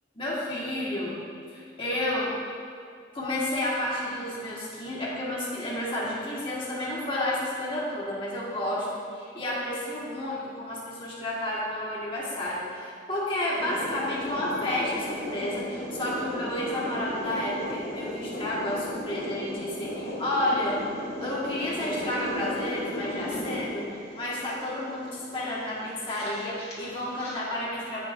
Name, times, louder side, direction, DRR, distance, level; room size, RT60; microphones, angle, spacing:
voice 1, 0.1-1.2 1.5-2.3 3.1-20.8 21.2-28.1, left 1 dB, 30° left, -6 dB, 1.6 m, -31 dB
sound 1, 13.5-27.3, equal, 60° left, 2.3 m, -36 dB
16.0 x 6.5 x 2.6 m, 2.2 s
head